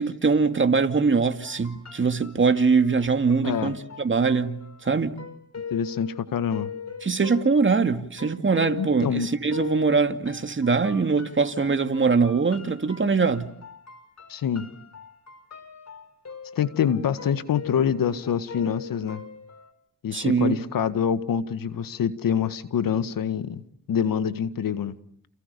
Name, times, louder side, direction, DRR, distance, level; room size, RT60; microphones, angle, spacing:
voice 1, 0.0-5.2 7.0-13.5 20.1-20.6, right 4 dB, 35° right, 2.3 m, -22 dB
sound 1, 1.4-19.7, left 6 dB, 50° left, 5.0 m, -41 dB
voice 2, 3.4-3.8 5.7-6.7 8.8-9.3 14.3-14.7 16.6-19.2 20.0-23.6 23.9-25.0, left 8 dB, 70° left, 1.8 m, -26 dB
30.0 x 29.0 x 6.9 m
cardioid pair, 60°, 35 cm